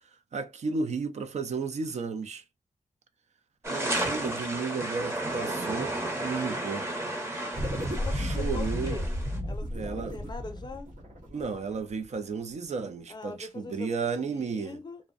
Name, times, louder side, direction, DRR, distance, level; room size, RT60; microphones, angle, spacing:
voice 1, 0.3-2.4 3.7-6.9 8.1-9.0 9.7-10.2 11.3-14.8, right 5 dB, 60° right, 0.4 m, -33 dB
sound 1, 3.6-9.4, right 1 dB, 20° right, 0.7 m, -33 dB
sound 2, 7.5-12.2, equal, 90° right, 0.9 m, -33 dB
voice 2, 7.9-9.1 9.5-10.9 13.1-15.1, left 4 dB, 35° left, 0.5 m, -42 dB
2.5 x 2.1 x 2.3 m
wide cardioid pair, 160°, 13 cm